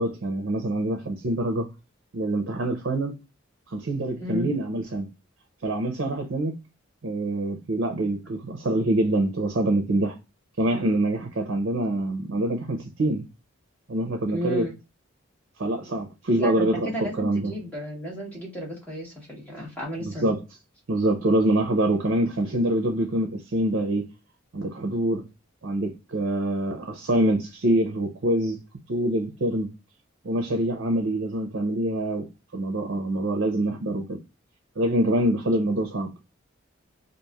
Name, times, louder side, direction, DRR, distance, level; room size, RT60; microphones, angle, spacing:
voice 1, 0.0-1.7 2.1-3.2 3.7-5.1 5.6-6.6 7.0-10.1 10.6-13.3 13.9-14.6 15.6-16.9 17.2-17.5 20.0-20.4 20.9-24.1 24.5-25.2 25.6-28.6 28.9-29.7 30.2-32.3 32.5-34.2 34.8-36.1, right 1 dB, 60° right, 0.5 m, -25 dB
voice 2, 4.2-4.5 14.3-14.7 16.4-20.3, equal, 5° left, 1.1 m, -33 dB
3.0 x 2.4 x 2.2 m
head